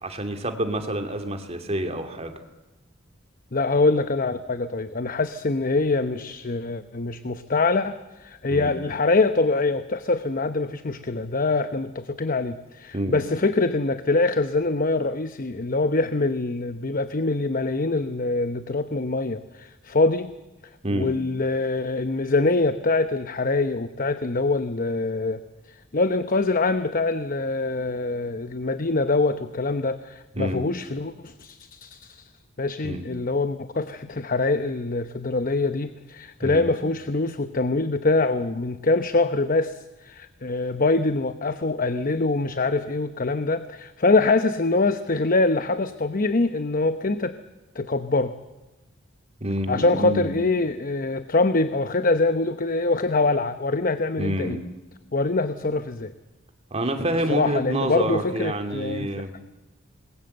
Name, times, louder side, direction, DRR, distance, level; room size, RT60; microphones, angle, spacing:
voice 1, 0.0-2.4 8.5-8.7 12.9-13.2 20.8-21.1 30.3-30.7 32.8-33.0 36.4-36.7 49.4-50.4 54.2-54.6 56.7-59.4, right 1 dB, 30° right, 6 dB, 2.6 m, -28 dB
voice 2, 3.5-20.3 20.9-25.4 25.7-32.3 32.6-47.3 47.7-48.3 49.7-54.6 55.1-56.1 57.3-59.1, left 3 dB, 45° left, 11 dB, 0.9 m, -24 dB
27.0 x 21.5 x 8.0 m, 1.0 s
head